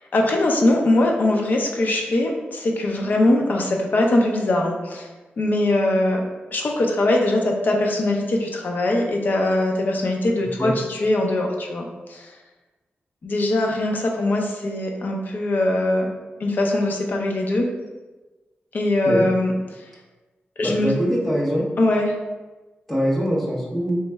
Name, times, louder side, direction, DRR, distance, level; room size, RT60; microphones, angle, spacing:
voice 1, 0.1-5.1 5.4-6.2 6.5-12.3 13.2-16.1 16.4-17.7 18.7-19.5 20.6-20.9 21.8-22.1, left 1 dB, 55° left, 1 dB, 0.6 m, -21 dB
voice 2, 20.6-21.7 22.9-24.0, equal, 5° left, -4 dB, 0.7 m, -23 dB
3.2 x 3.1 x 3.3 m, 1.2 s
wide cardioid pair, 170°, 4 cm